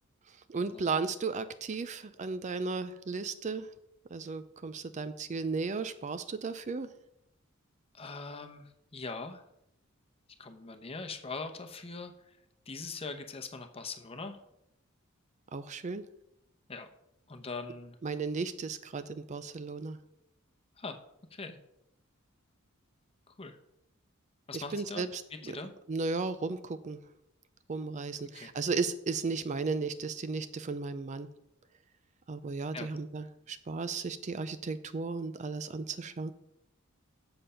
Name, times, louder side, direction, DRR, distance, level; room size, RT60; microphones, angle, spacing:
voice 1, 0.3-3.7 4.1-6.9 15.5-16.0 18.0-20.0 24.5-25.6 25.9-27.0 27.7-31.3 32.3-36.3, right 4 dB, 35° right, 12 dB, 0.4 m, -35 dB
voice 2, 7.9-9.4 10.4-12.1 12.7-14.4 16.7-16.9 17.3-18.0 20.8-21.0 21.3-21.6 23.3-23.6 24.5-25.0 25.3-25.7 28.3-28.5 32.7-32.9, left 4 dB, 30° left, 6 dB, 0.8 m, -41 dB
7.8 x 6.8 x 5.6 m, 0.81 s
head